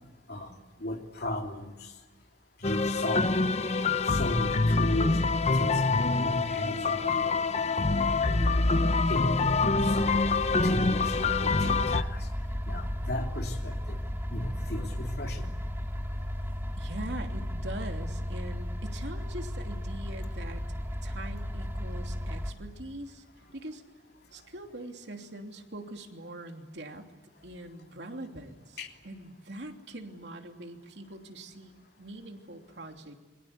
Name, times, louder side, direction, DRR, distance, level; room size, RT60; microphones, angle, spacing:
voice 1, 0.3-1.9 2.6-3.4 4.1-5.8 6.2-8.2 8.7-12.3 12.6-14.0 14.3-15.6 28.8-28.9, left 1 dB, 65° left, 3 dB, 3.2 m, -36 dB
sound 1, 2.6-12.0, left 3 dB, 40° left, 0.9 m, -26 dB
sound 2, 9.4-22.5, equal, 15° right, 2.9 m, -34 dB
voice 2, 16.8-20.6 21.0-23.2 23.5-23.8 24.3-27.1 27.4-28.8 29.0-33.2, right 1 dB, 75° right, 4 dB, 3.0 m, -42 dB
28.5 x 23.5 x 8.3 m, 1.3 s
head